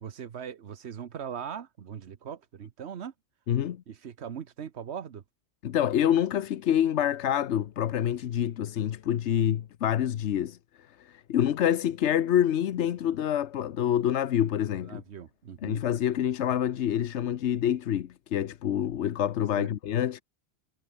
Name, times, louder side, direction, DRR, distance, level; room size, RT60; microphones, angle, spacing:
voice 1, 0.0-3.1 3.9-5.2 14.9-15.8 19.6-19.7, right 8 dB, 75° right, 1.3 m, -40 dB
voice 2, 3.5-3.8 5.6-10.6 11.0-15.0 15.6-20.2, left 10 dB, 90° left, 1.1 m, -27 dB
omnidirectional pair, 1.1 m